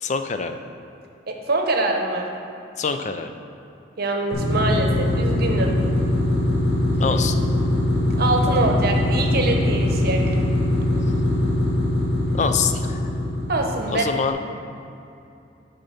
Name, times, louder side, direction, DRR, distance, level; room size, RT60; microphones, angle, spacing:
voice 1, 0.0-0.6 2.8-3.3 7.0-7.4 12.3-13.0 13.9-14.4, left 5 dB, 40° left, 7 dB, 0.4 m, -25 dB
voice 2, 1.3-2.3 4.0-5.7 8.2-10.4 13.5-14.1, right 2 dB, 55° right, 2 dB, 0.8 m, -24 dB
sound 1, 4.3-14.1, left 1 dB, 75° left, 1.4 m, -22 dB
8.5 x 4.0 x 5.7 m, 2.7 s
head